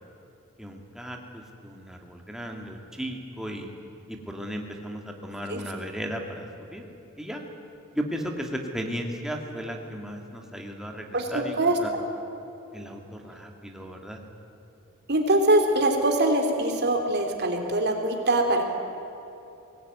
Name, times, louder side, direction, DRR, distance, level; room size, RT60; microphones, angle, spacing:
voice 1, 0.6-3.7 4.1-6.8 7.2-7.4 7.9-11.9 12.7-14.2, equal, ahead, 1 dB, 2.3 m, -35 dB
voice 2, 11.1-12.0 15.1-18.6, right 1 dB, 50° right, 3 dB, 3.3 m, -23 dB
22.5 x 18.5 x 9.6 m, 2.9 s
head